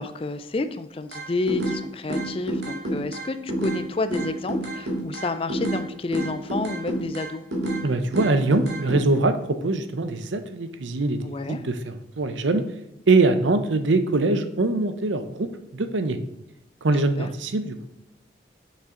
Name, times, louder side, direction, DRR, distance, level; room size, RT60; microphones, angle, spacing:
voice 1, 0.0-7.4 11.2-11.6 17.2-17.3, left 3 dB, 30° left, 11 dB, 0.4 m, -30 dB
sound 1, 1.1-1.8 2.1-3.8 4.1-5.8 6.1-7.8 8.1-9.0, right 1 dB, 65° right, 2.0 m, -28 dB
voice 2, 7.8-12.6 13.1-16.2 16.8-17.9, right 2 dB, 85° right, 10 dB, 0.7 m, -23 dB
6.5 x 5.8 x 3.8 m, 0.83 s
head